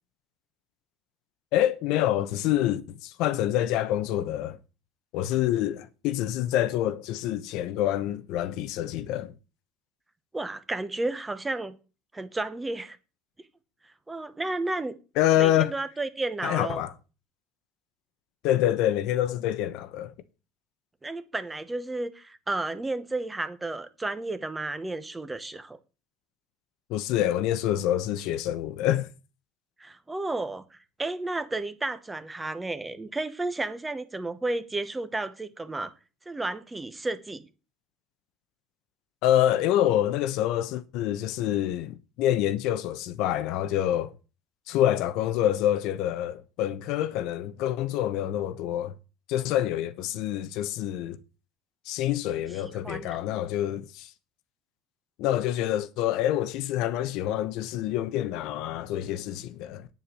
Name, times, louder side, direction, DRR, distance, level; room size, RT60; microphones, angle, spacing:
voice 1, 1.5-4.6 5.1-9.3 15.2-15.7 16.4-16.9 18.4-20.1 26.9-29.1 39.2-44.1 44.7-48.9 49.3-51.2 51.9-54.1 55.2-59.9, left 12 dB, 60° left, 0.9 m, -26 dB
voice 2, 10.3-11.8 12.1-13.0 14.1-14.9 15.4-16.8 21.0-25.8 29.8-35.9 36.3-37.4 52.6-53.1, right 2 dB, 10° right, 1.0 m, -32 dB
9.7 x 7.2 x 6.8 m
cardioid pair, 160°, 0 cm